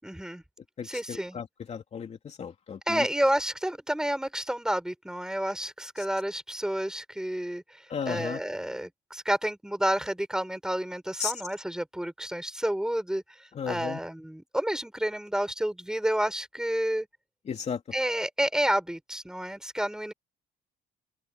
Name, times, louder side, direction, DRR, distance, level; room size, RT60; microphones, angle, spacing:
voice 1, 0.0-0.4 0.8-1.4 2.9-7.6 8.1-13.2 13.6-17.1 17.9-20.1, right 1 dB, 5° right, 6.9 m, -30 dB
voice 2, 0.8-3.1 7.9-8.4 11.2-11.3 13.6-14.0 17.5-17.8, left 7 dB, 40° left, 3.0 m, -34 dB
open air
cardioid pair, 110°, 17 cm